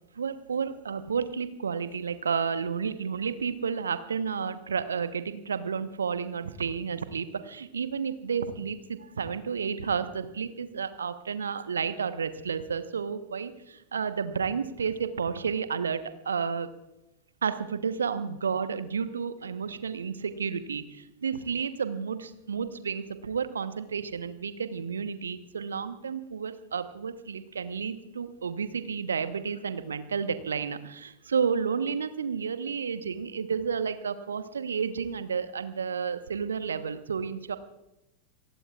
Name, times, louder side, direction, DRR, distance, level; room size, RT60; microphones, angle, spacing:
voice 1, 0.2-16.7 17.4-37.6, right 6 dB, 70° right, 11 dB, 1.1 m, -31 dB
28.0 x 19.5 x 2.4 m, 0.93 s
figure-of-eight pair, 90°, 0 cm